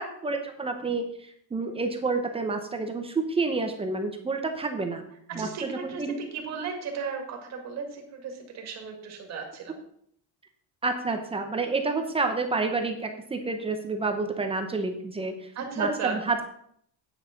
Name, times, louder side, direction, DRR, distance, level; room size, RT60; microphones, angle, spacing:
voice 1, 0.0-5.0 5.4-6.2 10.8-15.5 15.8-16.4, right 3 dB, 15° right, 5 dB, 0.8 m, -29 dB
voice 2, 5.3-9.8 15.5-16.3, right 5 dB, 40° right, 3 dB, 2.1 m, -35 dB
9.1 x 6.3 x 5.8 m, 0.66 s
cardioid pair, 180°, 39 cm